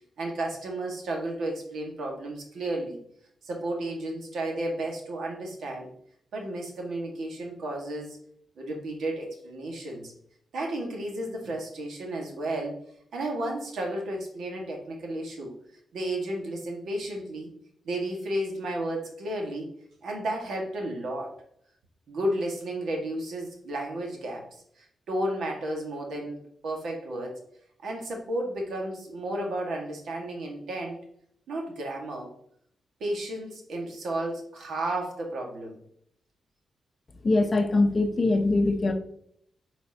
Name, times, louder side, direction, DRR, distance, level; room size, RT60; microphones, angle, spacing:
voice 1, 0.2-3.0 3.4-5.9 6.3-8.2 8.6-10.1 10.5-12.8 13.1-15.5 15.9-17.5 17.8-19.7 20.0-21.4 22.1-24.5 24.8-27.4 27.8-31.0 31.5-32.3 33.0-35.8, right 1 dB, 90° right, 0 dB, 1.7 m, -33 dB
voice 2, 37.2-38.9, left 2 dB, 35° left, 7 dB, 0.7 m, -22 dB
8.8 x 4.3 x 2.9 m, 0.69 s
wide cardioid pair, 145°, 0 cm